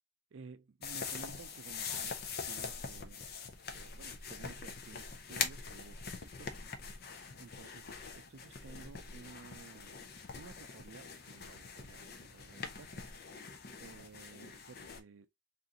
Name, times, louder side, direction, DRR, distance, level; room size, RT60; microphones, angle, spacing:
voice 1, 0.3-2.2 2.4-3.3 3.7-6.7 7.4-10.0 10.3-13.2 13.8-15.3, right 4 dB, 75° right, 0.5 m, -54 dB
sound 1, 0.8-15.0, left 5 dB, 55° left, 0.6 m, -43 dB
2.8 x 2.6 x 3.7 m
head